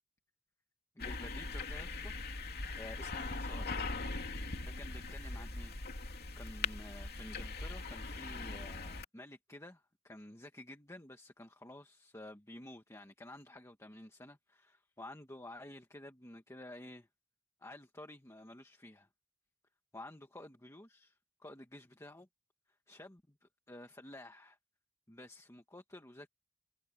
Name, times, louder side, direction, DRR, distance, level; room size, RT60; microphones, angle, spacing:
voice 1, 0.9-2.2 2.8-3.9 4.3-5.8 6.4-17.1 17.6-19.1 19.9-22.3 22.9-24.6 25.1-26.3, left 1 dB, 15° left, 1.7 m, -52 dB
sound 1, 1.0-9.0, left 3 dB, 50° left, 2.7 m, -41 dB
head